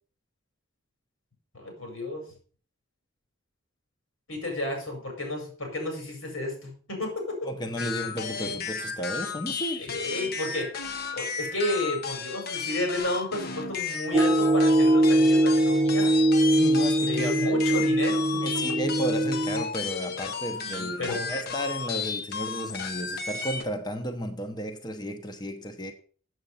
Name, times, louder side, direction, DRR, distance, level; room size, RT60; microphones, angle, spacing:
voice 1, 1.5-2.2 4.3-7.4 9.8-10.7 11.1-16.1 17.0-18.4 20.6-21.3, left 2 dB, 90° left, 5.4 m, -32 dB
voice 2, 7.4-9.9 16.5-17.6 18.4-25.9, equal, 20° left, 0.9 m, -33 dB
sound 1, 7.8-23.6, left 6 dB, 50° left, 0.9 m, -34 dB
sound 2, 14.1-19.6, right 1 dB, 20° right, 0.6 m, -22 dB
8.0 x 7.7 x 5.5 m
head